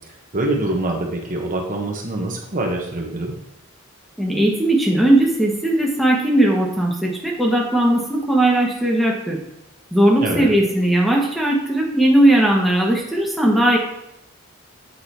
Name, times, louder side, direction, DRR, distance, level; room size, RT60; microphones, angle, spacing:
voice 1, 0.3-3.3 10.2-10.5, right 2 dB, 40° right, 1 dB, 1.2 m, -24 dB
voice 2, 4.2-9.4 9.9-13.8, right 1 dB, ahead, -3 dB, 1.3 m, -18 dB
8.2 x 4.9 x 4.3 m, 0.83 s
head